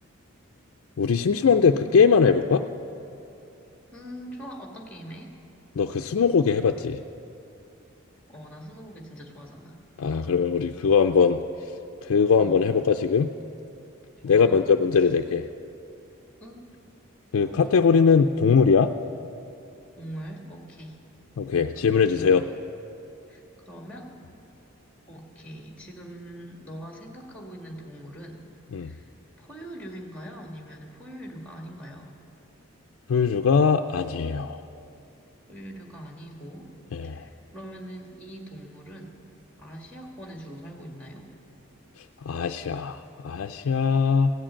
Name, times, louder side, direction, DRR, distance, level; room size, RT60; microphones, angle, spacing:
voice 1, 1.0-2.6 5.8-7.0 10.0-11.4 12.0-13.3 14.2-15.4 17.3-18.9 21.4-22.4 28.7-28.9 33.1-34.6 36.9-37.2 42.3-44.3, left 5 dB, 65° left, 4 dB, 0.4 m, -21 dB
voice 2, 3.9-5.3 8.3-9.8 12.3-12.7 14.2-15.1 16.4-16.7 17.4-17.9 20.0-21.0 22.1-22.4 23.3-24.1 25.1-28.4 28.8-29.1 29.4-32.1 35.5-36.7 37.0-39.1 39.6-41.3, right 1 dB, 5° left, 1 dB, 1.6 m, -42 dB
16.0 x 7.6 x 8.7 m, 2.7 s
head